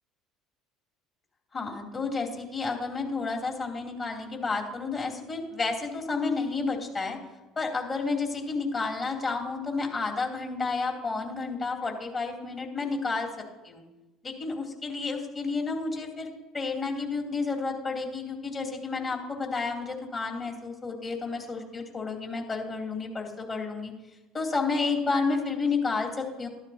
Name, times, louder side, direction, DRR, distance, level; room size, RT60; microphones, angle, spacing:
voice 1, 1.5-7.2 7.6-13.3 13.6-13.8 14.2-23.9 24.3-26.5, left 4 dB, 35° left, -1 dB, 2.8 m, -31 dB
12.5 x 12.5 x 2.8 m, 1.1 s
hypercardioid pair, 65°, 0 cm